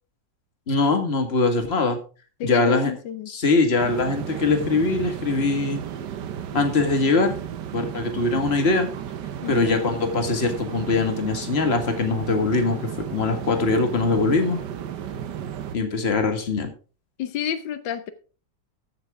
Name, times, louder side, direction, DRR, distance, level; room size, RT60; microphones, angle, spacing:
voice 1, 0.7-2.0 2.4-2.9 3.3-5.8 6.5-7.3 7.7-8.9 9.5-14.6 15.7-16.7, left 3 dB, 35° left, 6 dB, 1.9 m, -22 dB
voice 2, 2.4-3.3 9.4-9.8 17.2-18.1, left 9 dB, 85° left, 11 dB, 1.6 m, -30 dB
sound 1, 3.8-15.8, right 9 dB, 70° right, 1.5 m, -34 dB
14.0 x 9.0 x 3.6 m, 0.36 s
omnidirectional pair, 2.0 m